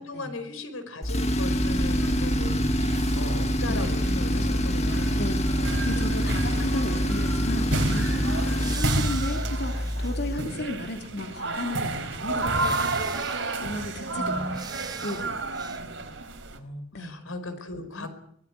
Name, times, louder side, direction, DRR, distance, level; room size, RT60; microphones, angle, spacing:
voice 1, 0.0-2.7 3.2-5.3 5.9-6.1 8.5-8.7 14.1-14.7 16.5-18.1, left 2 dB, 85° left, 10 dB, 5.2 m, -37 dB
Tools, 1.0-10.5, equal, 30° left, 1.8 m, -26 dB
sound 1, 1.6-16.6, right 2 dB, 60° right, 4.1 m, -32 dB
voice 2, 3.7-4.0 5.1-12.9 13.3-14.6 15.0-15.4 16.9-17.2 17.9-18.1, left 1 dB, 50° left, 4 dB, 2.8 m, -35 dB
sound 2, 8.6-10.6 11.0-11.1 12.5-13.6 14.5-15.3 15.5-15.8, right 5 dB, 20° right, 3.4 m, -40 dB
23.5 x 20.0 x 9.7 m, 0.68 s
head